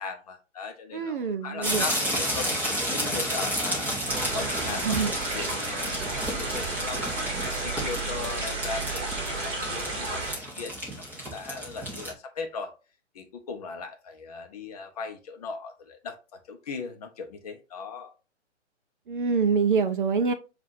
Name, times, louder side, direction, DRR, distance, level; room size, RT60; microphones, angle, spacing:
voice 1, 0.0-1.2 1.4-2.5 2.9-3.9 4.3-12.7 13.1-18.1, left 5 dB, 35° left, 0.7 m, -38 dB
voice 2, 0.9-1.9 4.8-5.1 19.1-20.3, right 5 dB, 45° right, 0.5 m, -25 dB
sound 1, 1.6-12.1, equal, 5° right, 0.9 m, -32 dB
sound 2, 4.1-10.3, right 2 dB, 30° right, 1.9 m, -32 dB
7.2 x 2.5 x 2.5 m
figure-of-eight pair, 135°, 36 cm